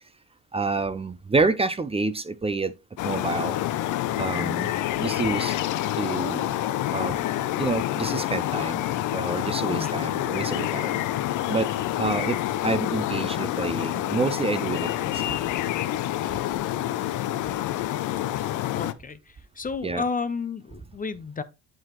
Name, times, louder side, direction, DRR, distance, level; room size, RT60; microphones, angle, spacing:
voice 1, 0.5-2.7 3.0-3.6 4.1-5.6 6.0-6.5 6.9-7.2 7.6-10.9 11.5-11.7 12.0-12.4 12.6-15.4 19.8-20.0, right 3 dB, 20° right, 0.5 m, -28 dB
sound 1, 3.0-18.9, left 13 dB, 80° left, 0.5 m, -27 dB
voice 2, 4.3-4.6 9.7-9.9 18.7-19.2 19.6-21.4, left 5 dB, 30° left, 0.5 m, -31 dB
7.6 x 4.8 x 3.0 m
cardioid pair, 90°, 30 cm